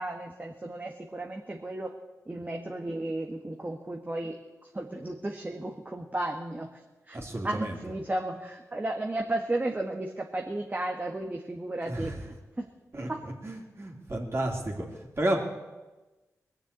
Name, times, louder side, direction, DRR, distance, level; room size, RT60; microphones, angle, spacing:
voice 1, 0.0-1.9 2.3-4.4 4.6-6.8 7.1-12.1 12.6-12.7 13.1-13.2, right 1 dB, 25° right, 2 dB, 1.6 m, -34 dB
voice 2, 7.1-7.8 11.8-12.2 12.9-15.4, right 1 dB, 40° right, 0 dB, 3.3 m, -32 dB
19.5 x 7.0 x 8.4 m, 1.2 s
cardioid pair, 45°, 6 cm